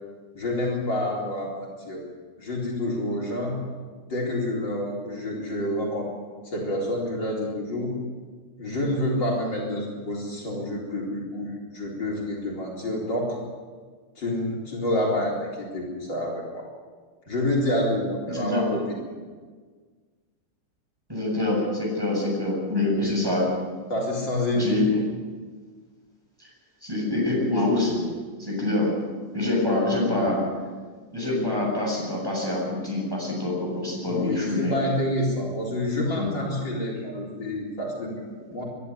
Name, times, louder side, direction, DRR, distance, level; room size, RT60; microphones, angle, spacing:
voice 1, 0.3-2.0 2.4-3.6 4.1-6.1 6.4-7.9 8.6-13.4 14.2-16.7 17.3-18.9 22.9-23.1 23.9-24.8 34.0-38.6, left 1 dB, 55° left, -3 dB, 4.8 m, -28 dB
voice 2, 18.3-18.7 21.1-23.5 24.5-25.0 26.4-26.5 26.8-28.1 28.4-28.9 29.3-30.4 31.1-34.7 36.2-36.6, left 2 dB, 10° right, -3 dB, 7.4 m, -25 dB
22.0 x 12.0 x 9.9 m, 1.5 s
omnidirectional pair, 2.3 m